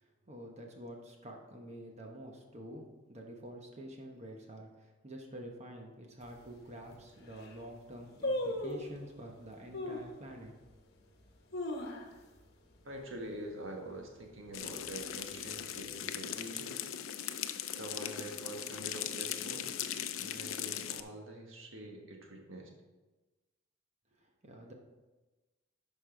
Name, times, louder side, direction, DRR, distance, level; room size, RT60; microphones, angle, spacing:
voice 1, 0.3-2.8 3.1-10.5 24.4-24.7, equal, 35° right, 1 dB, 1.0 m, -48 dB
sound 1, 6.2-6.3 6.9-7.0 7.2-7.6 8.2-9.0 9.7-10.1 10.6-10.7 11.3-12.4 12.7-12.8 13.1-13.5 13.9-14.3 14.9-15.7 15.9-16.0, left 1 dB, 55° left, 1.2 m, -37 dB
voice 2, 12.8-17.0 17.8-19.7 20.2-22.7, right 1 dB, 75° right, 2 dB, 1.5 m, -45 dB
sound 2, 14.5-21.0, left 10 dB, 90° left, 0.5 m, -39 dB
11.5 x 5.3 x 3.8 m, 1.2 s
head